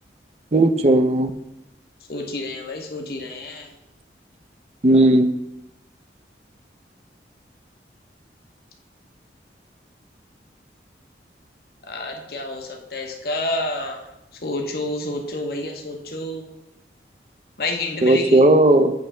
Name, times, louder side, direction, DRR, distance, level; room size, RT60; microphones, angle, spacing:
voice 1, 0.5-1.3 4.8-5.3 18.0-18.9, right 1 dB, 35° right, 9 dB, 0.5 m, -15 dB
voice 2, 2.1-3.7 11.9-14.0 14.4-16.4 17.6-18.4, left 2 dB, 55° left, 2 dB, 1.0 m, -29 dB
8.5 x 3.3 x 6.1 m, 0.88 s
head